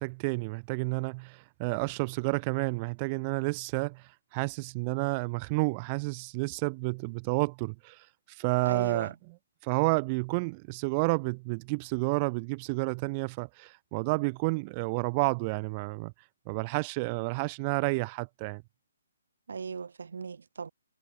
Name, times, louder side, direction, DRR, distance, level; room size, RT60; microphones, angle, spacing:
voice 1, 0.0-8.1 8.4-9.1 9.6-16.1 16.5-18.6, right 29 dB, 15° right, 3.3 m, -30 dB
voice 2, 8.6-9.1 19.5-20.7, right 5 dB, 60° right, 4.0 m, -37 dB
hypercardioid pair, 180°, 0 cm